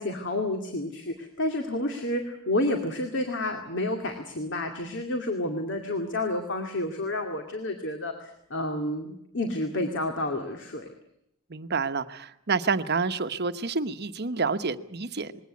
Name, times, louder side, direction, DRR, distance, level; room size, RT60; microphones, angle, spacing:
voice 1, 0.0-10.9, left 1 dB, 60° left, 4 dB, 2.3 m, -30 dB
voice 2, 11.5-15.4, right 4 dB, 50° right, 10 dB, 1.0 m, -28 dB
21.5 x 18.0 x 9.5 m, 0.77 s
head